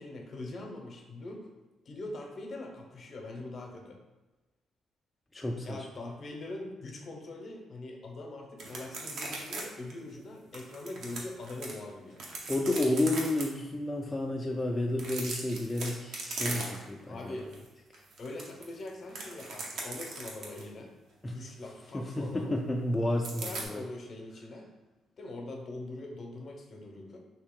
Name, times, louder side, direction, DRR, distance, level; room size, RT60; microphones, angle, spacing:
voice 1, 0.0-1.5 1.9-4.0 5.4-12.2 17.0-17.5 18.2-21.0 21.2-22.6 23.4-24.7 25.2-27.2, left 2 dB, 50° left, 2 dB, 0.7 m, -42 dB
voice 2, 5.3-5.9 12.5-17.3 21.2-21.4 21.9-23.8, left 1 dB, 15° left, 0 dB, 0.3 m, -31 dB
sound 1, 8.6-9.6 9.9-10.0 10.5-11.7 12.1-13.4 14.9-17.0 17.4-17.6 17.9-20.7 23.2-23.7, right 3 dB, 75° right, 0.7 m, -38 dB
2.9 x 2.7 x 3.7 m, 1.1 s
cardioid pair, 90°, 0 cm